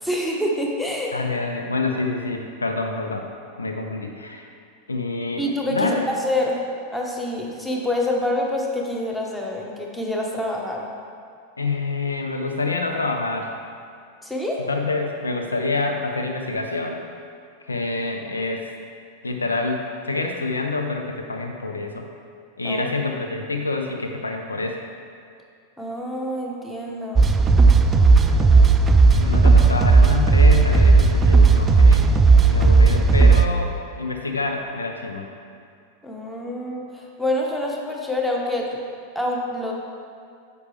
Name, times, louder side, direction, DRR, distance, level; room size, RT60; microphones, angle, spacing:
voice 1, 0.0-1.2 5.4-6.6 6.9-10.9 14.2-14.6 22.6-22.9 25.8-27.3 36.0-38.8 39.1-39.7, left 1 dB, 5° left, -1 dB, 1.1 m, -26 dB
voice 2, 1.1-3.3 3.6-4.5 4.9-5.4 5.7-6.0 11.6-13.5 14.7-17.0 17.7-18.6 19.2-22.1 22.6-24.8 28.3-28.7 29.1-32.2 32.4-35.3, left 3 dB, 75° left, 4 dB, 0.6 m, -27 dB
sound 1, 27.2-33.5, right 4 dB, 20° right, 0.4 m, -14 dB
9.4 x 6.9 x 3.3 m, 2.4 s
figure-of-eight pair, 90°, 0 cm